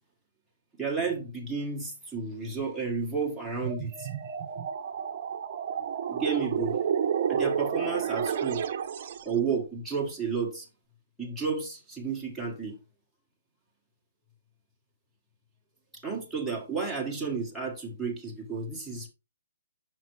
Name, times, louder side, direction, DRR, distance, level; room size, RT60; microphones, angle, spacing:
voice 1, 0.8-4.1 6.1-6.8 7.3-8.6 9.2-10.7 11.2-12.7 16.0-19.1, right 5 dB, ahead, 1.5 m, -32 dB
sound 1, 3.5-9.3, right 7 dB, 40° right, 0.8 m, -30 dB
5.9 x 5.8 x 3.1 m
hypercardioid pair, 165°, 0 cm